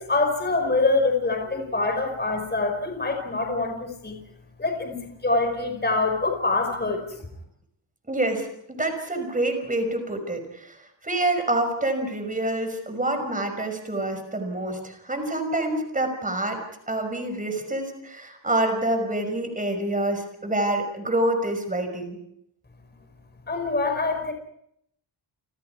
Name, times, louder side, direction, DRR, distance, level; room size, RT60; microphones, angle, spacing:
voice 1, 0.0-4.2 4.6-7.0 23.5-24.3, left 3 dB, 20° left, 4 dB, 5.1 m, -25 dB
voice 2, 8.1-22.2, right 1 dB, 15° right, 6 dB, 5.7 m, -27 dB
30.0 x 27.0 x 4.8 m, 0.74 s
wide cardioid pair, 175°, 47 cm